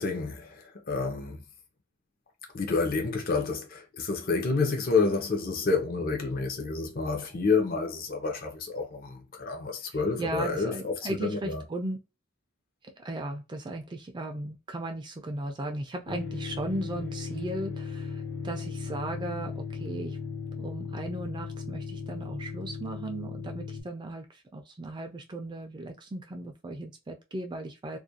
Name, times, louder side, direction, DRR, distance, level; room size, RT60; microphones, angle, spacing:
voice 1, 0.0-1.4 2.5-11.6, left 4 dB, 45° left, 0.6 m, -29 dB
voice 2, 10.2-12.0 12.8-20.2 20.6-28.0, right 1 dB, 20° right, 0.3 m, -36 dB
sound 1, 16.1-23.8, left 5 dB, 70° left, 1.1 m, -37 dB
2.4 x 2.1 x 2.7 m
head